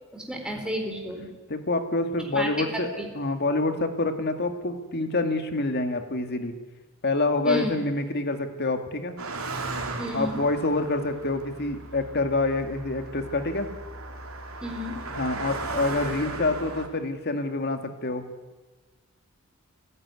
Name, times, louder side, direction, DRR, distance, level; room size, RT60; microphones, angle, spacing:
voice 1, 0.1-1.3 2.3-3.1 7.4-7.8 10.0-10.4 14.6-15.0, equal, 5° right, 2 dB, 4.2 m, -31 dB
voice 2, 1.5-2.9 3.1-6.5 7.0-9.2 10.1-13.7 15.1-18.2, left 2 dB, 50° left, 7 dB, 2.1 m, -27 dB
Car passing by, 9.2-16.9, right 3 dB, 80° right, 3.1 m, -36 dB
29.5 x 11.0 x 9.7 m, 1.3 s
head